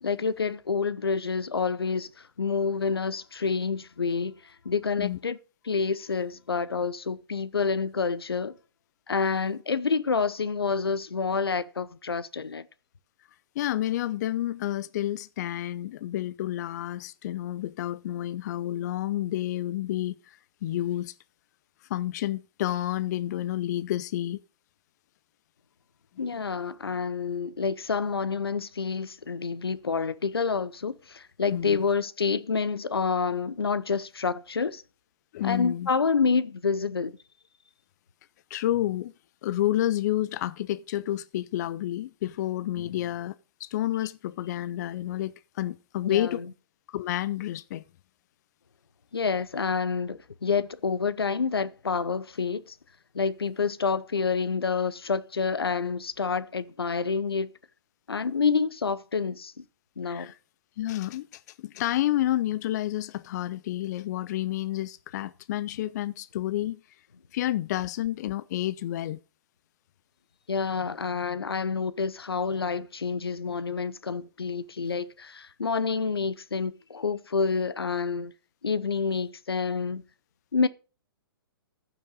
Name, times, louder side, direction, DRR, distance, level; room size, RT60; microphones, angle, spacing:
voice 1, 0.0-2.1 2.4-5.4 5.6-8.6 9.1-12.7 26.2-34.8 35.4-37.2 46.0-46.4 49.1-52.7 53.1-57.5 58.1-59.6 60.0-60.3 70.5-78.3 78.6-80.0 80.5-80.7, left 5 dB, 85° left, 0.8 m, -28 dB
voice 2, 13.6-21.1 21.9-24.4 26.2-26.3 31.5-31.8 35.3-35.9 38.5-39.1 39.4-43.3 43.6-46.4 46.9-47.8 60.0-60.3 60.8-66.8 67.3-69.2, left 13 dB, 45° left, 0.4 m, -30 dB
14.5 x 6.0 x 3.9 m
hypercardioid pair, 125°, 12 cm